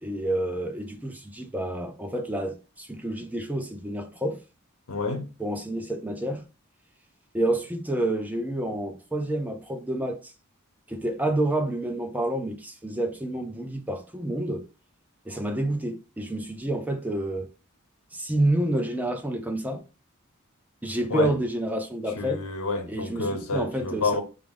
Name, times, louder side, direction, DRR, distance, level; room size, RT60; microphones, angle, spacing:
voice 1, 0.0-4.4 5.4-6.4 7.3-10.3 10.9-14.7 15.3-17.5 18.1-19.8 20.8-22.4 22.9-24.2, right 1 dB, 10° right, 0.4 m, -29 dB
voice 2, 4.9-5.3 21.1-21.3 22.2-24.2, left 3 dB, 85° left, 0.9 m, -29 dB
4.8 x 2.0 x 3.5 m
head